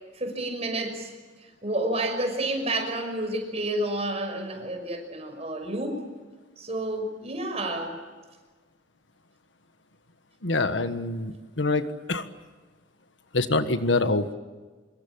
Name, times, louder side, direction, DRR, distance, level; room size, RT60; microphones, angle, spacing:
voice 1, 0.1-1.1 1.6-6.0 6.6-8.0, right 1 dB, 35° right, 5 dB, 6.0 m, -30 dB
voice 2, 10.4-12.3 13.3-14.3, left 3 dB, 80° left, 10 dB, 1.5 m, -25 dB
25.5 x 22.0 x 8.7 m, 1.4 s
head